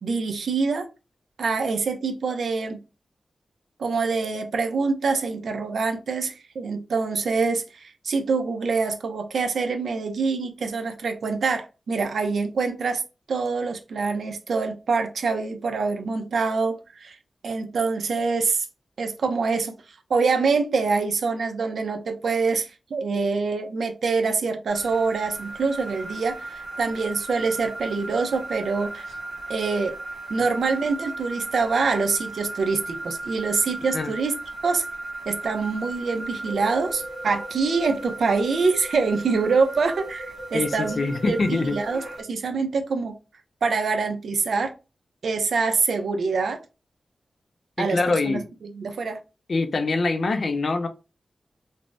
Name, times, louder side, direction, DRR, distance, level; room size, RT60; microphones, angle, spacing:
voice 1, 0.0-0.9 1.4-2.8 3.8-13.0 13.3-17.2 17.4-18.7 19.0-29.1 29.5-29.9 30.3-34.4 34.6-34.8 35.3-41.0 41.3-43.1 43.6-44.7 45.2-46.6 47.8-49.2, right 4 dB, 90° right, 0.5 m, -25 dB
sound 1, 24.7-42.2, right 2 dB, 50° right, 0.9 m, -36 dB
voice 2, 40.5-41.8 47.9-48.5 49.5-50.9, left 3 dB, 50° left, 0.4 m, -24 dB
3.3 x 2.0 x 2.5 m
wide cardioid pair, 165°, 0 cm